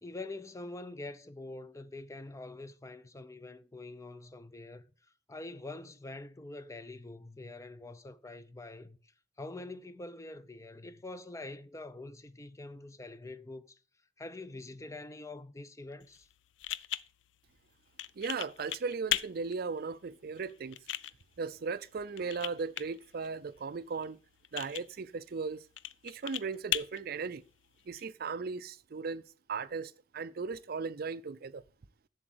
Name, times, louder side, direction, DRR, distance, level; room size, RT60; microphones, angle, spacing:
voice 1, 0.0-4.8 5.3-9.0 9.4-13.8 14.2-16.3, left 2 dB, 15° left, 0.5 m, -45 dB
sound 1, 16.0-28.0, left 12 dB, 80° left, 0.5 m, -40 dB
voice 2, 18.2-20.8 21.4-24.2 24.5-25.6 26.0-27.4 27.9-31.6, right 4 dB, 55° right, 0.5 m, -37 dB
7.6 x 7.1 x 7.7 m
head